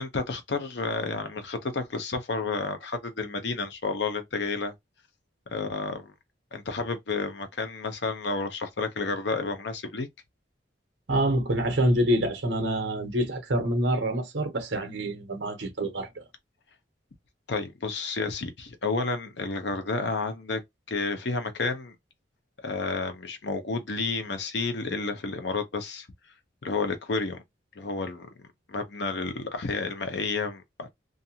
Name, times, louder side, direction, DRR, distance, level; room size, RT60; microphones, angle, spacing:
voice 1, 0.0-4.7 5.5-6.1 6.5-10.1 17.5-20.6 20.9-21.9 22.6-26.1 26.6-27.4 27.8-28.3 28.7-30.9, left 3 dB, 65° left, 0.7 m, -31 dB
voice 2, 11.1-16.1, right 1 dB, 70° right, 0.9 m, -26 dB
2.5 x 2.3 x 2.7 m
head